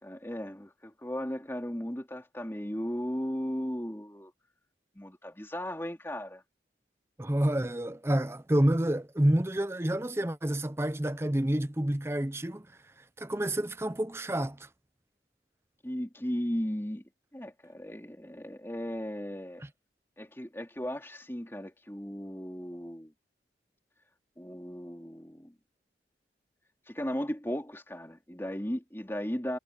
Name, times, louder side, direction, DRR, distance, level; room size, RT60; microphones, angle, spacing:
voice 1, 0.0-4.3 4.9-6.4 15.8-17.0 17.3-19.6 20.2-23.1 24.4-25.5 26.9-29.6, equal, 15° left, 3.0 m, -36 dB
voice 2, 7.2-12.7 13.2-14.7, right 1 dB, 15° right, 0.6 m, -28 dB
head